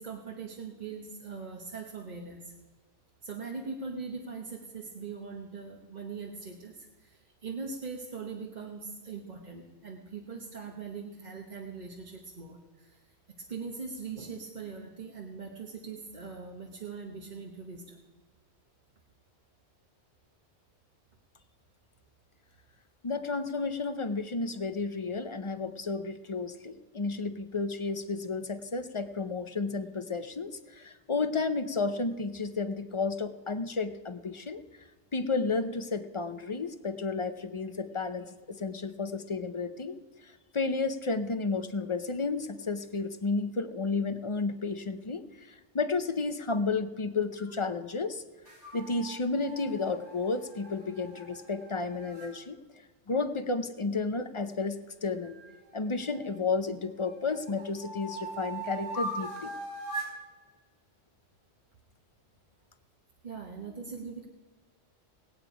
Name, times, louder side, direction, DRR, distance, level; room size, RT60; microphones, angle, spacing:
voice 1, 0.0-2.5 3.2-18.0 63.2-64.3, right 5 dB, 40° right, 1 dB, 1.1 m, -41 dB
voice 2, 23.0-34.6 35.1-40.0 40.2-48.2 48.7-52.6 53.1-55.3 55.7-59.5, left 4 dB, 35° left, 10 dB, 0.5 m, -32 dB
sound 1, 48.5-52.3 55.2-56.5 57.0-60.2, right 2 dB, 70° right, 5.1 m, -41 dB
19.5 x 8.8 x 5.0 m, 1.3 s
omnidirectional pair, 1.2 m